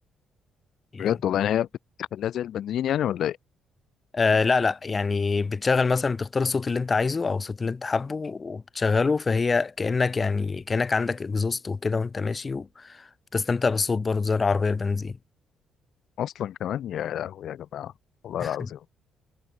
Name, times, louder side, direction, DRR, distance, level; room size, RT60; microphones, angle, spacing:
voice 1, 1.0-1.7 2.0-3.4 16.2-17.9 18.2-18.8, left 10 dB, 70° left, 1.9 m, -28 dB
voice 2, 4.1-15.2 18.4-18.7, left 4 dB, 35° left, 2.0 m, -25 dB
supercardioid pair, 60°, 0 cm